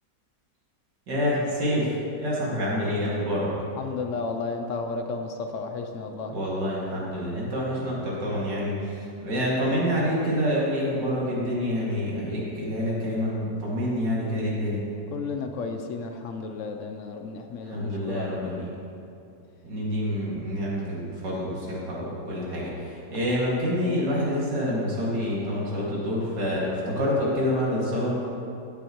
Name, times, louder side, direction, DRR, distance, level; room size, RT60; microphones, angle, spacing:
voice 1, 1.1-3.5 6.3-14.8 17.7-18.7 19.6-28.2, equal, 80° right, -6 dB, 2.8 m, -27 dB
voice 2, 3.7-6.4 15.1-18.5 23.2-23.4, left 4 dB, 65° left, 5 dB, 0.7 m, -33 dB
15.5 x 7.0 x 3.0 m, 2.7 s
omnidirectional pair, 1.8 m